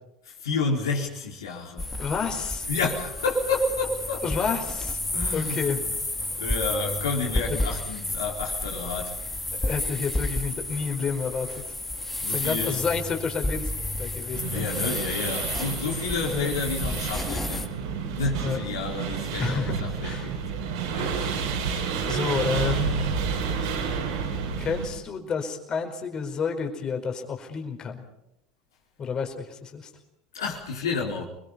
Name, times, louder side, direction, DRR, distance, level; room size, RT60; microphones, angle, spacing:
voice 1, 0.2-1.9 2.7-4.2 5.1-5.9 6.4-9.2 12.2-12.8 14.5-17.7 18.2-20.4 20.9-21.4 21.7-22.1 30.3-31.2, left 3 dB, 80° left, 4.4 m, -30 dB
sound 1, 1.8-17.7, left 2 dB, 10° left, 1.9 m, -31 dB
voice 2, 2.0-2.7 4.2-5.0 5.3-5.8 9.6-11.7 12.3-13.7 14.0-14.8 16.3-16.5 18.4-18.6 19.4-19.7 20.0-20.3 21.1-21.3 22.0-23.1 24.6-28.0 29.0-29.9, left 6 dB, 35° left, 4.7 m, -30 dB
sound 2, 14.3-24.9, right 6 dB, 75° right, 6.2 m, -30 dB
29.0 x 22.0 x 5.5 m
hypercardioid pair, 80°, 2 cm